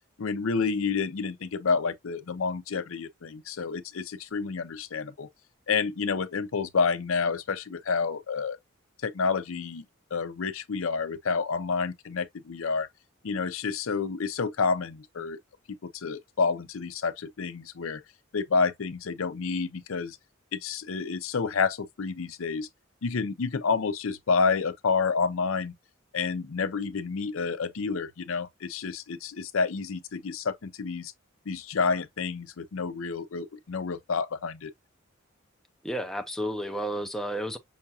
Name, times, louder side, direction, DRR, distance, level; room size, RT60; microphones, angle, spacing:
voice 1, 0.2-5.3 5.7-8.6 9.0-9.8 10.1-12.9 13.2-15.4 15.9-18.0 18.3-20.2 20.5-22.7 23.0-25.7 26.1-31.1 31.5-34.7, left 5 dB, 85° left, 0.6 m, -29 dB
voice 2, 35.8-37.6, equal, ahead, 0.4 m, -31 dB
5.6 x 2.4 x 2.7 m
head